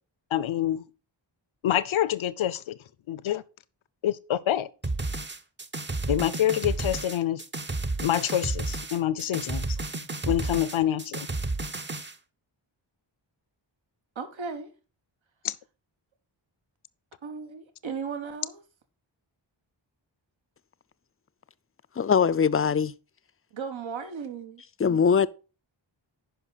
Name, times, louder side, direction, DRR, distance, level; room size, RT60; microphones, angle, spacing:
voice 1, 0.3-0.8 1.6-2.8 3.1-3.4 4.0-4.7 6.1-7.4 8.0-9.7 10.3-11.3 15.4-15.5, left 11 dB, 85° left, 0.6 m, -26 dB
sound 1, 4.8-12.1, right 2 dB, 25° right, 0.7 m, -32 dB
voice 2, 14.1-14.7 17.2-18.6 23.5-24.6, right 5 dB, 75° right, 1.2 m, -36 dB
voice 3, 22.0-22.9 24.8-25.3, left 6 dB, 30° left, 0.4 m, -21 dB
10.0 x 5.5 x 4.0 m
wide cardioid pair, 85°, 47 cm